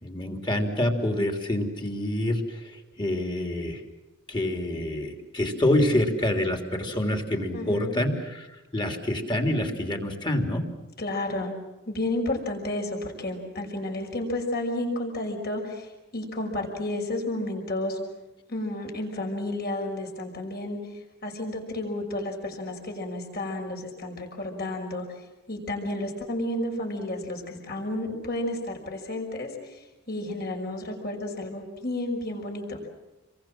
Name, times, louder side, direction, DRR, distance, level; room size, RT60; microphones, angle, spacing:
voice 1, 0.0-3.8 4.3-8.5 8.7-10.6, left 1 dB, 20° left, 4 dB, 3.4 m, -27 dB
voice 2, 7.5-8.0 11.0-11.5 11.9-18.0 18.5-25.1 25.5-32.9, left 1 dB, 45° left, 2 dB, 5.8 m, -32 dB
29.0 x 23.0 x 7.7 m, 1.1 s
head